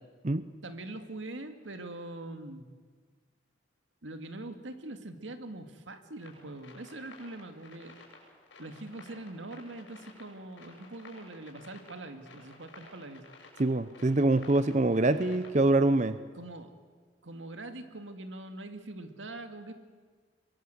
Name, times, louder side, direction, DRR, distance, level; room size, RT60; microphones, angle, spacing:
voice 1, 0.6-2.7 4.0-8.0 8.6-13.2 16.3-16.7 17.2-19.7, right 2 dB, 90° right, 7 dB, 2.1 m, -43 dB
sound 1, 6.2-15.9, left 3 dB, 90° left, 7.2 m, -53 dB
voice 2, 13.6-16.2, right 2 dB, 40° right, 12 dB, 0.7 m, -25 dB
23.5 x 23.0 x 8.0 m, 1.5 s
head